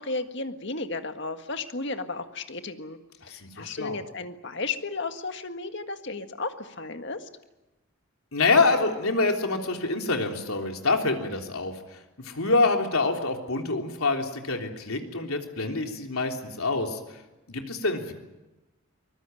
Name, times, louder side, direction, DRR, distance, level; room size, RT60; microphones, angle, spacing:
voice 1, 0.0-3.0 3.3-7.3, left 3 dB, 55° left, 8 dB, 1.7 m, -34 dB
voice 2, 3.2-4.0 8.3-17.2 17.5-18.1, left 3 dB, 80° left, 3 dB, 3.4 m, -26 dB
24.0 x 21.0 x 9.1 m, 1.1 s
head